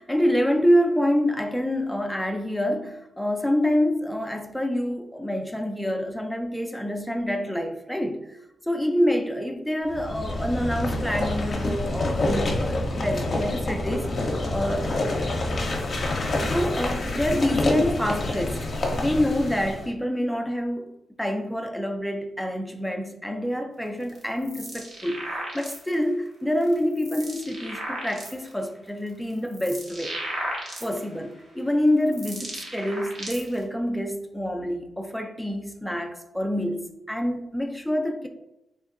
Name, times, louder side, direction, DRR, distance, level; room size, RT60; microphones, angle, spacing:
voice 1, 0.0-8.4 8.7-14.1 14.5-15.1 16.4-18.7 19.0-20.9 21.2-30.2 30.8-38.3, equal, 5° left, 5 dB, 0.4 m, -26 dB
sound 1, 9.9-19.9, left 2 dB, 50° left, 0.6 m, -27 dB
sound 2, 24.0-26.0 26.6-28.5 29.1-31.2 31.8-33.6, right 1 dB, 55° right, 0.9 m, -35 dB
3.4 x 2.1 x 2.5 m, 0.89 s
cardioid pair, 65°, 0 cm